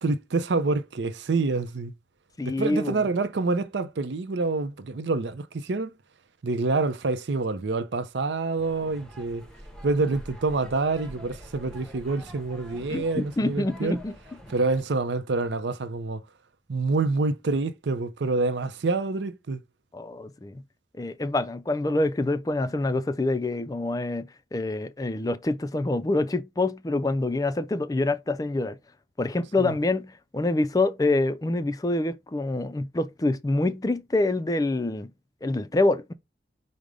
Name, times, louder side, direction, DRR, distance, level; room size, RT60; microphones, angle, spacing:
voice 1, 0.0-1.9 2.4-5.9 6.4-9.4 9.8-14.0 14.5-16.2 16.7-19.6 29.6-29.8, right 3 dB, 80° right, 0.6 m, -27 dB
voice 2, 2.4-3.1 12.9-14.1 19.9-20.6 21.0-28.8 29.2-35.1 35.4-36.1, left 2 dB, 20° left, 0.3 m, -26 dB
sound 1, 8.6-14.8, equal, 5° left, 0.8 m, -46 dB
5.2 x 2.1 x 4.8 m
head